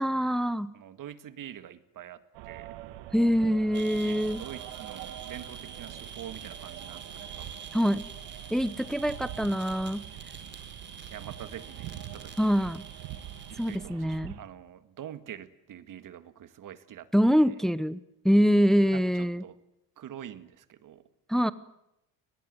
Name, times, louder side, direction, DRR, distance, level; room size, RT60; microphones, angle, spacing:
voice 1, 0.0-0.7 3.1-4.4 7.7-8.1 8.5-10.0 12.4-12.8 13.6-14.4 17.1-18.0 18.2-19.4 21.3-21.5, equal, ahead, 16 dB, 0.9 m, -24 dB
voice 2, 0.7-2.7 3.7-7.6 11.1-12.5 13.5-17.1 17.5-17.6 18.9-19.6 20.0-21.0, right 10 dB, 50° right, 12 dB, 1.9 m, -45 dB
sound 1, 2.3-14.4, right 13 dB, 75° right, 1.9 m, -44 dB
sound 2, 3.7-13.8, right 6 dB, 25° right, 4.5 m, -46 dB
23.5 x 20.0 x 9.6 m, 0.84 s
supercardioid pair, 90°, 41 cm